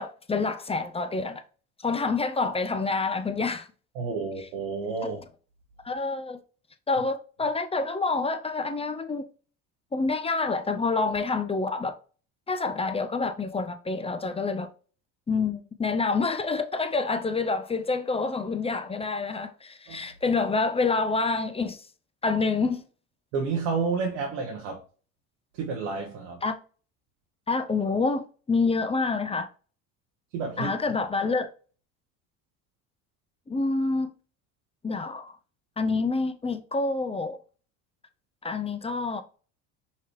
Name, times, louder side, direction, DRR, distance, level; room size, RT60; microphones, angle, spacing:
voice 1, 0.0-1.4 1.8-3.7 5.8-6.4 6.9-9.2 9.9-11.9 12.5-14.7 15.3-21.8 22.2-22.8 26.4-26.6 27.5-29.5 30.6-31.5 33.5-34.1 34.8-35.3 35.8-37.4 38.4-39.2, left 3 dB, 15° left, 0.4 m, -27 dB
voice 2, 3.9-5.2 19.9-20.0 23.3-24.8 25.5-26.4 30.3-30.7, right 4 dB, 85° right, 1.0 m, -30 dB
5.6 x 3.0 x 3.1 m
supercardioid pair, 75°, 39 cm